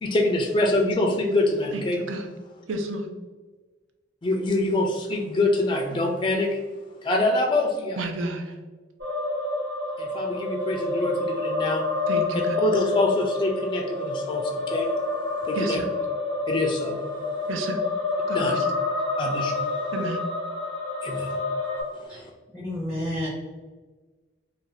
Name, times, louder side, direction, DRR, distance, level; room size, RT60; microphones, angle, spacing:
voice 1, 0.0-2.0 4.2-6.6 7.0-8.0 10.0-11.9 12.6-15.0 15.4-15.8 16.5-17.4 18.3-18.5 19.2-19.9 21.0-21.6 21.9-22.3, left 2 dB, 25° left, 1 dB, 0.3 m, -25 dB
voice 2, 1.7-2.3 2.7-3.1 8.0-8.6 12.1-12.6 15.5-15.9 17.5-17.8 18.3-18.7 19.9-20.2, right 2 dB, 90° right, 4 dB, 0.5 m, -31 dB
sound 1, 9.0-21.8, left 3 dB, 55° right, 1.2 m, -28 dB
voice 3, 22.5-23.3, left 1 dB, 5° right, -9 dB, 0.7 m, -30 dB
2.5 x 2.2 x 3.9 m, 1.3 s
head